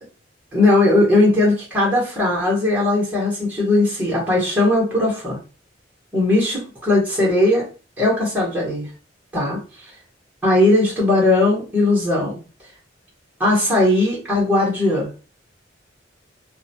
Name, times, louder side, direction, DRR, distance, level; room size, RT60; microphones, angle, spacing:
voice 1, 0.5-5.4 6.1-7.6 8.0-8.9 9.3-9.9 10.4-12.4 13.4-15.1, left 2 dB, 10° right, -6 dB, 1.0 m, -18 dB
2.3 x 2.2 x 2.7 m, 0.35 s
head